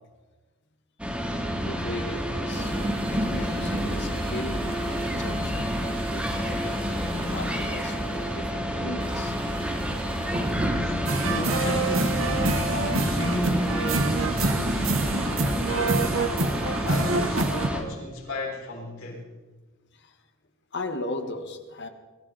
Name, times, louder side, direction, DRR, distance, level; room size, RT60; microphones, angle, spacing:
sound 1, 1.0-17.8, equal, 5° right, 2.8 m, -30 dB
voice 1, 1.6-6.9 7.3-9.4 19.9-20.2 20.7-21.9, left 2 dB, 55° left, 6 dB, 1.8 m, -37 dB
sound 2, 2.5-8.5 9.0-15.7, equal, 25° right, 2.2 m, -33 dB
voice 2, 10.6-12.3 12.7-16.2 16.8-19.3, left 1 dB, 80° left, -3 dB, 6.0 m, -34 dB
sound 3, 11.1-17.7, right 3 dB, 75° right, 1.6 m, -26 dB
22.5 x 15.0 x 4.3 m, 1.3 s
head